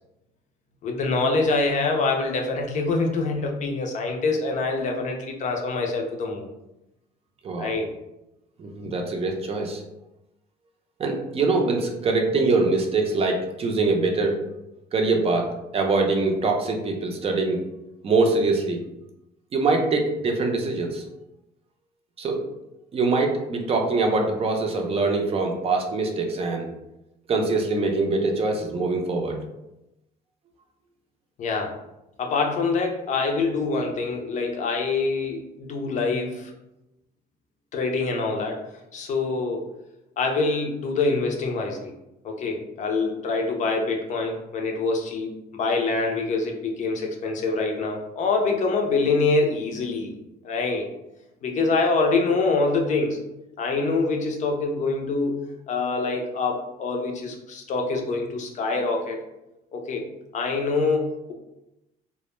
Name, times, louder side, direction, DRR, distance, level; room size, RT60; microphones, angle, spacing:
voice 1, 0.8-6.5 7.6-7.9 8.8-8.9 31.4-31.7 32.2-36.5 37.7-38.6 38.9-39.7 40.2-41.9 42.2-50.1 50.4-50.9 51.4-53.2 53.6-59.2 59.7-60.1 60.3-61.3, left 3 dB, 45° left, 2 dB, 0.5 m, -25 dB
voice 2, 7.4-7.8 8.6-9.8 11.0-14.4 14.9-17.6 18.0-18.8 19.5-21.0 22.2-22.4 22.9-26.7 27.3-29.4, right 3 dB, 35° right, 2 dB, 0.5 m, -23 dB
2.1 x 2.1 x 3.0 m, 0.91 s
cardioid pair, 110°, 17 cm